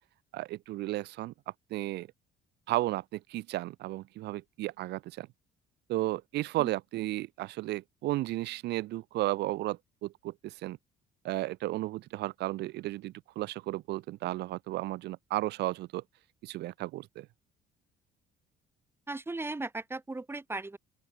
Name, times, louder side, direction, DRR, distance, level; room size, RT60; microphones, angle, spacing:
voice 1, 0.3-1.3 1.7-2.1 2.7-5.3 5.9-10.8 11.2-16.0 16.4-17.3, right 17 dB, 80° right, 4.7 m, -34 dB
voice 2, 19.1-20.8, right 2 dB, 15° right, 5.6 m, -37 dB
open air
cardioid pair, 110°, 17 cm